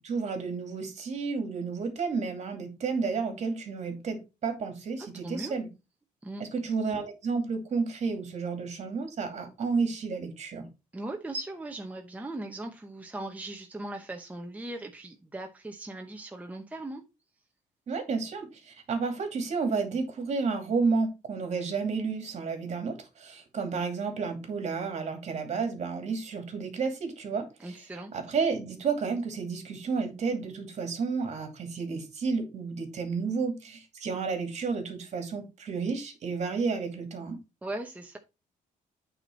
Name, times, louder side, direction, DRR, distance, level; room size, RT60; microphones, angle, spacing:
voice 1, 0.0-5.7 6.4-10.7 17.9-27.8 28.1-37.4, right 4 dB, 50° right, 2.5 m, -31 dB
voice 2, 5.0-5.5 6.2-6.4 10.9-17.0 27.6-28.1 37.6-38.2, right 2 dB, 10° right, 0.9 m, -39 dB
8.8 x 4.3 x 4.4 m
cardioid pair, 135°, 15 cm